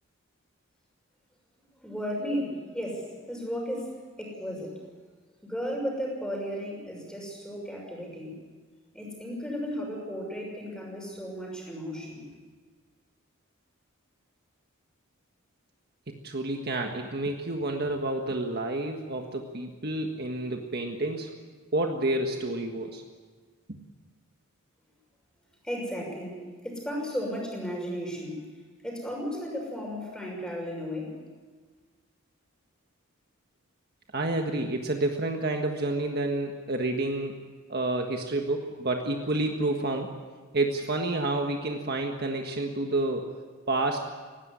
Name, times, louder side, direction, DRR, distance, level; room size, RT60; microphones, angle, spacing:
voice 1, 1.8-3.9 4.2-4.8 5.4-8.4 8.9-12.3 25.6-28.5 28.8-31.1, equal, 5° left, -1 dB, 6.1 m, -34 dB
voice 2, 16.1-21.3 21.7-23.0 23.7-23.8 34.1-37.4 37.7-40.1 40.5-43.3 43.7-44.1, right 2 dB, 45° right, 3 dB, 1.6 m, -29 dB
19.5 x 17.0 x 9.9 m, 1.4 s
head